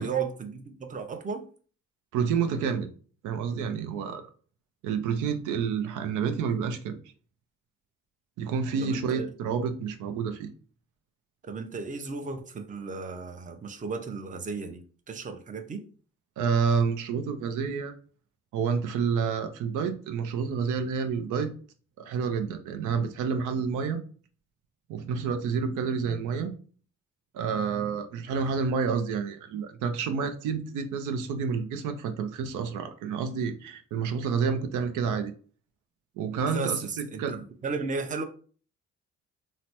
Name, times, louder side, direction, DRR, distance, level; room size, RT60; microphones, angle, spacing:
voice 1, 0.0-1.4 8.8-9.3 11.4-14.8 15.1-15.8 36.3-38.2, right 5 dB, 25° right, 6 dB, 0.5 m, -34 dB
voice 2, 2.1-2.9 3.2-4.2 4.8-7.0 8.4-10.5 16.4-17.9 18.5-21.5 22.0-24.0 24.9-26.5 27.3-35.3 36.2-37.4, right 6 dB, 85° right, 8 dB, 0.5 m, -29 dB
3.2 x 2.0 x 2.8 m, 0.41 s
cardioid pair, 90°, 30 cm